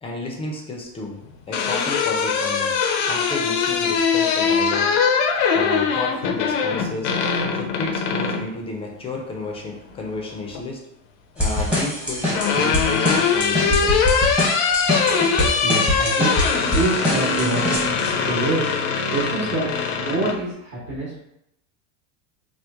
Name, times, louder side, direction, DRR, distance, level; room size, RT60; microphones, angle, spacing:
voice 1, 0.0-1.2 1.5-2.8 3.0-5.0 5.5-7.1 7.5-10.8 11.3-14.1, left 2 dB, 15° left, 0 dB, 0.5 m, -32 dB
sound 1, 1.2-8.5 9.9-10.6 11.9-20.4, left 6 dB, 65° left, 0.6 m, -22 dB
sound 2, 11.4-18.1, left 1 dB, 5° right, 0.9 m, -24 dB
voice 2, 15.4-16.3 16.7-18.7 19.1-21.1, right 2 dB, 40° right, -6 dB, 1.2 m, -26 dB
3.0 x 2.1 x 3.5 m, 0.81 s
supercardioid pair, 125°, 39 cm